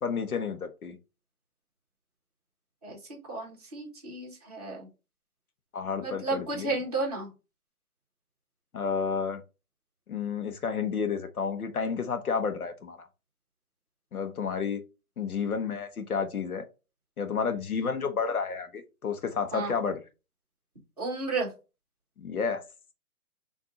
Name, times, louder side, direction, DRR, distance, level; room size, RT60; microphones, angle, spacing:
voice 1, 0.0-1.0 5.7-6.7 8.7-9.4 10.1-13.1 14.1-14.8 15.2-16.6 17.2-20.0 22.2-22.6, left 6 dB, 75° left, 1.0 m, -31 dB
voice 2, 2.8-4.9 6.0-7.3 19.5-19.7 21.0-21.5, right 3 dB, 25° right, 1.3 m, -33 dB
4.8 x 2.7 x 3.8 m
hypercardioid pair, 175°, 44 cm